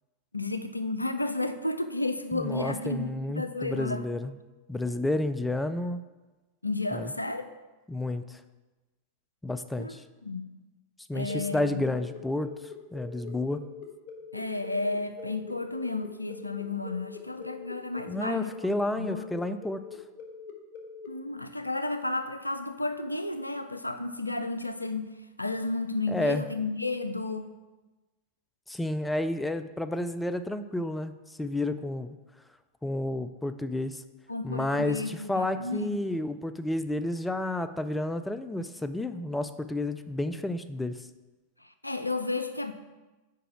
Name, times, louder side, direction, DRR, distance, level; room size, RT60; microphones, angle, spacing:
voice 1, 0.3-4.0 6.6-7.4 9.8-9.9 10.2-10.6 11.1-12.0 14.3-18.5 19.0-19.3 21.1-25.1 25.4-27.5 34.3-36.0 41.6-42.7, left 2 dB, 85° left, 9 dB, 0.4 m, -32 dB
voice 2, 2.3-4.3 4.7-6.0 6.9-7.1 7.9-8.4 9.4-10.0 11.1-13.6 18.1-19.8 26.1-26.4 28.7-32.2 32.8-34.0 34.4-41.1, left 1 dB, 5° left, 10 dB, 0.3 m, -31 dB
sound 1, 11.3-21.1, left 5 dB, 40° left, 1.0 m, -44 dB
5.0 x 4.7 x 6.0 m, 1.2 s
figure-of-eight pair, 90°, 0 cm